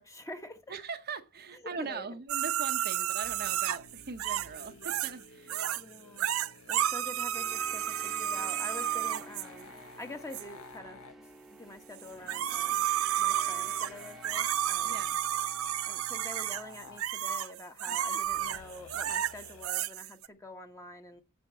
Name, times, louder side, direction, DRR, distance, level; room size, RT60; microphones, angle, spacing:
voice 1, 0.0-0.6 1.5-2.1 5.7-6.3 6.7-9.7 10.0-11.0 11.6-12.9 13.2-15.0 15.8-21.2, left 1 dB, 15° left, 1.4 m, -46 dB
voice 2, 0.7-5.6 14.8-15.2 17.9-18.4, right 5 dB, 50° right, 1.0 m, -41 dB
sound 1, 2.3-5.2 5.5-5.8 6.2-9.5 10.3-10.4 12.0-20.3, right 11 dB, 70° right, 0.5 m, -32 dB
sound 2, 3.2-11.2 12.1-17.1 18.2-19.7, left 3 dB, 75° left, 1.4 m, -53 dB
sound 3, 7.3-16.1, right 2 dB, ahead, 1.3 m, -51 dB
9.4 x 8.1 x 8.2 m
head